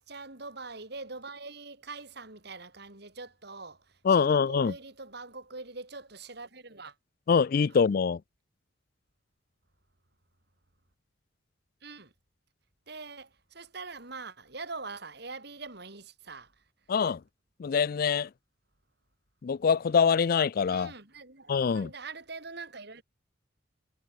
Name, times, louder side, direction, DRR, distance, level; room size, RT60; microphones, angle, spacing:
voice 1, 0.0-6.9 7.7-7.8 11.8-12.1 12.9-16.5 20.7-23.0, right 3 dB, 60° right, 4.5 m, -43 dB
voice 2, 4.0-4.7 7.3-8.2 16.9-17.2 17.6-18.3 19.4-20.9 21.5-21.9, left 6 dB, 50° left, 0.4 m, -24 dB
head